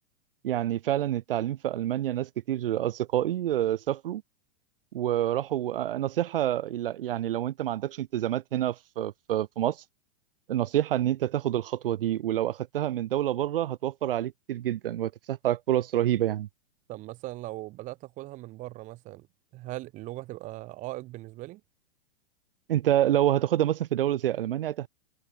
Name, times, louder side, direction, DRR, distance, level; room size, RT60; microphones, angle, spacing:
voice 1, 0.4-4.2 4.9-9.8 10.5-16.5 22.7-24.9, right 12 dB, 60° right, 3.0 m, -27 dB
voice 2, 16.9-19.3 19.5-21.6, right 18 dB, 25° right, 4.0 m, -39 dB
supercardioid pair, 170°, 31 cm